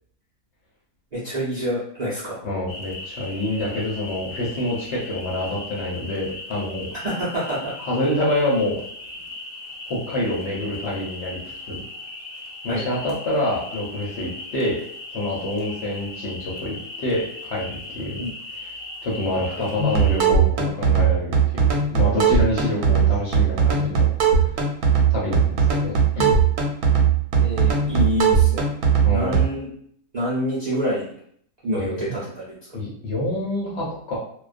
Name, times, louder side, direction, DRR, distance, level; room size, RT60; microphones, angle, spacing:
voice 1, 1.1-2.4 7.0-7.7 12.7-12.8 18.2-18.3 19.3-19.4 27.4-28.7 28.9-29.7 30.1-31.0 31.6-32.4, equal, 45° right, -10 dB, 0.5 m, -27 dB
voice 2, 2.4-6.9 7.8-8.8 9.9-11.4 11.7-11.8 12.6-14.8 15.1-18.3 18.6-18.7 19.0-24.1 25.1-26.4 29.0-29.5 31.8-32.1 32.7-34.2, left 1 dB, 60° left, -5 dB, 0.8 m, -26 dB
sound 1, 2.7-20.2, left 2 dB, 90° left, 1.1 m, -38 dB
sound 2, 19.8-29.5, right 6 dB, 80° right, 1.1 m, -19 dB
2.3 x 2.2 x 2.4 m, 0.63 s
omnidirectional pair, 1.5 m